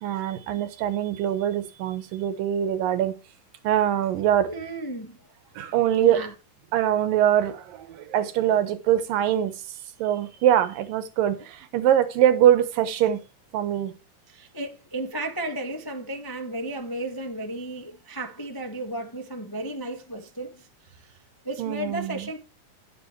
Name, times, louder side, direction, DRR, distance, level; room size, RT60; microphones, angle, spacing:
voice 1, 0.0-3.1 3.6-4.5 5.6-6.2 6.7-9.5 10.0-13.2 13.5-13.9 21.6-22.3, right 11 dB, 85° right, 2.9 m, -23 dB
voice 2, 4.4-5.2 6.0-6.3 14.3-21.2 21.4-22.4, right 1 dB, 20° left, 0.6 m, -34 dB
11.5 x 10.5 x 3.2 m
omnidirectional pair, 3.9 m